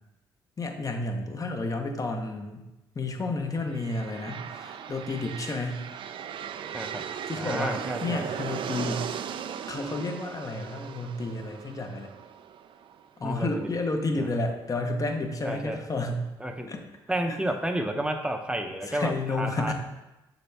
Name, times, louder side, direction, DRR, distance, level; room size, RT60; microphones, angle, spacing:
voice 1, 0.6-2.7 2.9-5.8 7.3-9.1 9.7-12.1 13.2-16.3 16.7-16.8 17.3-17.4 18.9-19.7, left 2 dB, 35° left, 4 dB, 0.9 m, -31 dB
sound 1, 3.6-13.4, right 8 dB, 60° right, 0.4 m, -38 dB
voice 2, 7.3-8.3 13.2-13.7 14.1-14.3 15.4-15.8 16.4-16.7 17.1-19.7, right 1 dB, 10° right, 3 dB, 0.7 m, -31 dB
6.7 x 4.1 x 3.4 m, 1.0 s
supercardioid pair, 60°, 10 cm